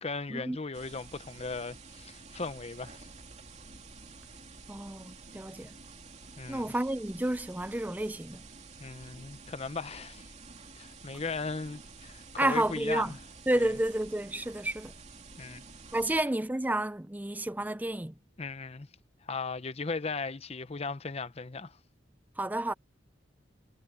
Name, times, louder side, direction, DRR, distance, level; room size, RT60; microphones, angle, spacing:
voice 1, 0.0-3.1 6.4-6.7 8.8-10.2 10.8-13.2 13.6-13.8 15.4-15.6 18.4-18.9 19.3-21.7, left 4 dB, 35° left, 0.7 m, -37 dB
sound 1, 0.7-16.2, right 4 dB, 35° right, 2.8 m, -50 dB
voice 2, 4.7-5.7 6.5-8.4 12.4-13.1 13.5-14.9 15.9-18.1 22.4-22.7, right 1 dB, 10° right, 0.5 m, -30 dB
head